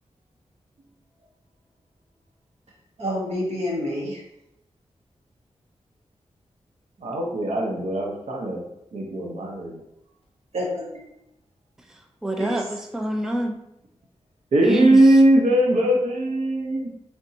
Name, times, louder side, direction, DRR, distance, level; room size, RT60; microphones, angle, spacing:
voice 1, 3.0-4.2 10.5-11.0 12.4-12.6, equal, 70° right, -4 dB, 1.4 m, -28 dB
voice 2, 7.0-8.6 8.9-9.8 14.5-16.9, right 1 dB, 85° right, -2 dB, 0.8 m, -20 dB
voice 3, 11.9-13.6 14.6-15.2, right 1 dB, 5° right, 3 dB, 0.3 m, -27 dB
4.0 x 3.4 x 2.7 m, 0.82 s
wide cardioid pair, 135°, 11 cm